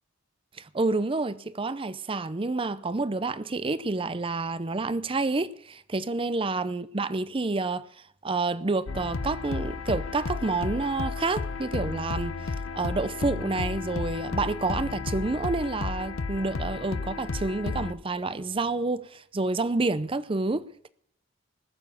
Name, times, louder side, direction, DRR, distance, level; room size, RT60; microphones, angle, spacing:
voice 1, 0.6-7.9 8.2-12.4 12.7-20.9, right 3 dB, 25° right, 0.6 m, -29 dB
sound 1, 8.9-17.9, left 4 dB, 85° left, 0.7 m, -33 dB
20.5 x 7.0 x 6.9 m
head